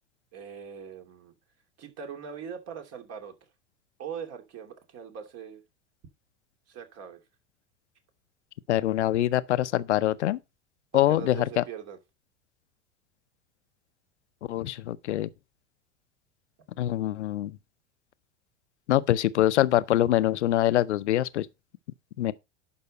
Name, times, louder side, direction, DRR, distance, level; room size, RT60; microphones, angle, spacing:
voice 1, 0.3-1.3 1.8-3.3 4.0-5.6 6.7-7.2 10.9-12.0, right 7 dB, 45° right, 2.8 m, -41 dB
voice 2, 8.7-10.4 10.9-11.6 14.5-15.3 16.8-17.6 18.9-21.5 22.2-22.3, left 13 dB, 75° left, 0.7 m, -24 dB
11.5 x 5.6 x 4.1 m
hypercardioid pair, 85°, 35 cm